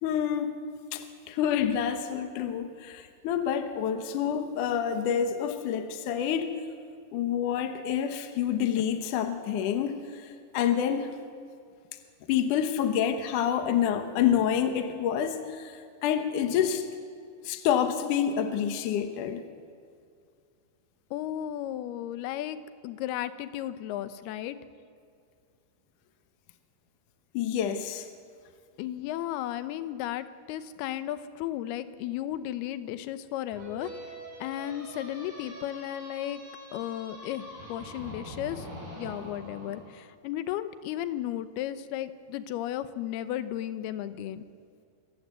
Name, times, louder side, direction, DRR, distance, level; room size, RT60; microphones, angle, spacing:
voice 1, 0.0-0.6 0.9-6.5 7.1-11.1 12.3-16.9 17.4-19.4 27.3-28.1, left 9 dB, 65° left, 7 dB, 2.3 m, -28 dB
voice 2, 21.1-22.6 22.8-24.6 28.8-33.9 34.4-36.4 36.7-38.7 39.0-44.4, left 12 dB, 80° left, 12 dB, 2.8 m, -34 dB
sound 1, 33.5-39.8, equal, 55° right, 8.9 m, -44 dB
26.5 x 15.0 x 8.2 m, 2.2 s
omnidirectional pair, 4.5 m